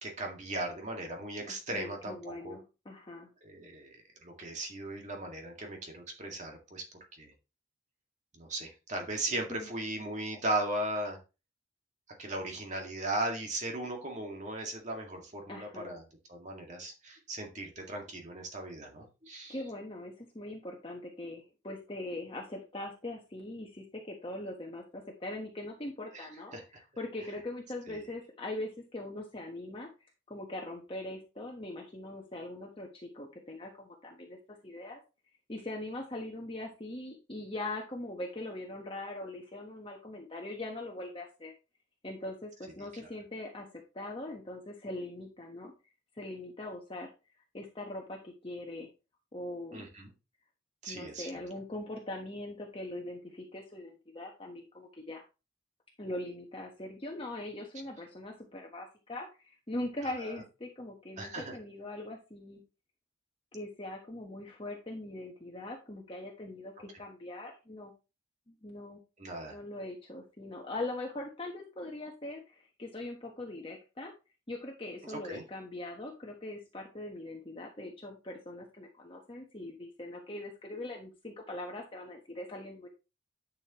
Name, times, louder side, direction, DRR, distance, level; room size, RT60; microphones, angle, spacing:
voice 1, 0.0-2.6 3.4-6.8 7.1-7.3 8.3-11.2 12.2-16.0 16.3-19.6 26.1-26.3 26.5-26.6 27.9-28.0 49.7-50.1 50.8-51.4 60.0-60.3 61.2-61.6 69.2-69.6 75.0-75.4, right 1 dB, 35° right, 2 dB, 2.0 m, -37 dB
voice 2, 1.3-3.3 9.3-9.7 15.5-16.0 19.5-26.5 27.0-29.9 30.3-34.4 34.6-35.0 35.5-41.5 42.0-45.7 46.1-47.1 47.5-48.9 49.3-49.9 50.9-55.2 56.0-62.6 63.5-67.9 68.5-69.0 69.5-74.1 74.5-82.9, left 1 dB, 25° left, 0 dB, 1.2 m, -41 dB
10.5 x 6.5 x 3.0 m, 0.29 s
head